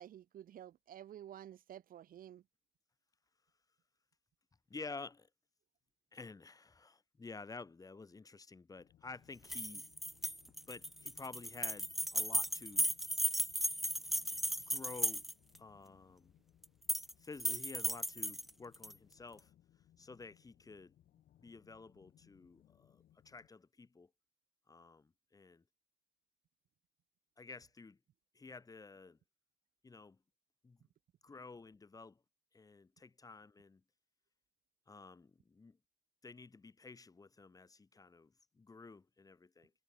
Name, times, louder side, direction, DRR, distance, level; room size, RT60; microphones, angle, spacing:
voice 1, 0.0-2.4, right 11 dB, 55° right, 2.4 m, -51 dB
voice 2, 4.7-5.3 6.1-9.9 10.7-12.9 14.7-15.2 15.6-16.3 17.2-19.5 20.0-20.9 21.4-24.1 24.7-25.6 27.4-28.0 28.3-29.2 29.8-30.2 30.6-30.8 31.2-32.2 32.5-33.8 34.9-35.8 36.2-39.7, left 4 dB, 20° left, 3.0 m, -51 dB
sound 1, 8.8-23.5, left 12 dB, 60° left, 3.5 m, -68 dB
sound 2, 9.4-15.6 16.6-17.1 17.4-18.9, equal, ahead, 0.6 m, -36 dB
cardioid pair, 110°, 17 cm